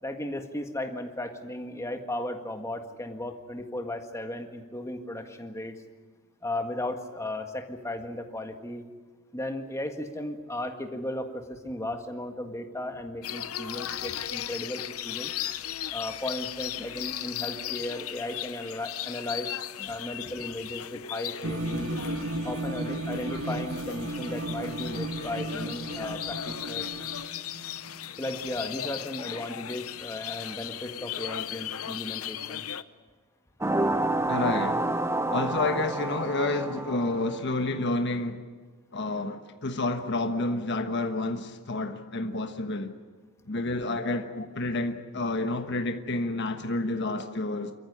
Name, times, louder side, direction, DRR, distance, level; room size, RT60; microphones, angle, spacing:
voice 1, 0.0-5.8 6.4-8.9 9.3-15.3 15.9-21.9 22.4-26.9 28.2-32.7 44.0-44.1, left 1 dB, 15° left, 1.7 m, -35 dB
sound 1, 13.2-32.8, left 11 dB, 80° left, 0.8 m, -37 dB
sound 2, 21.4-29.1, right 1 dB, 75° right, 1.4 m, -35 dB
sound 3, 33.6-37.5, right 2 dB, 10° right, 0.7 m, -29 dB
voice 2, 34.3-34.9 35.3-38.4 38.9-42.9 43.5-47.7, left 2 dB, 55° left, 1.3 m, -29 dB
27.0 x 14.5 x 10.0 m
head